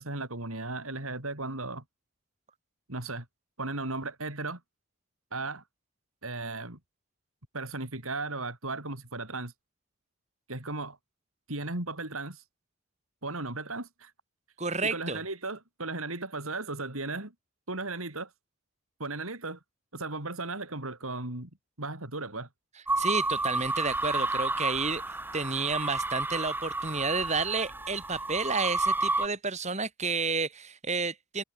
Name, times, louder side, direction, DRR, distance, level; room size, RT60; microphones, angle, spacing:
voice 1, 0.0-1.8 2.9-3.3 3.6-4.6 5.3-5.6 6.2-6.8 7.5-9.5 10.5-11.0 11.5-12.4 13.2-14.1 14.8-17.3 17.7-18.3 19.0-19.6 19.9-21.5 21.8-22.5, right 2 dB, 80° right, 5.3 m, -36 dB
voice 2, 14.6-15.2 23.0-25.0 25.3-31.4, right 4 dB, 30° right, 5.2 m, -31 dB
sound 1, 22.9-29.3, right 2 dB, 10° right, 2.6 m, -31 dB
head